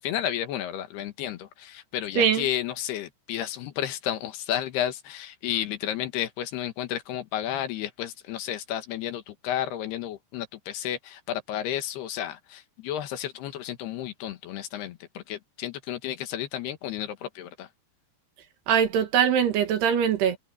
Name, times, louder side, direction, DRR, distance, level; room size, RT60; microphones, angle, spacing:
voice 1, 0.0-17.7, left 11 dB, 75° left, 3.3 m, -32 dB
voice 2, 2.2-2.5 18.7-20.4, right 8 dB, 70° right, 3.9 m, -22 dB
omnidirectional pair, 4.9 m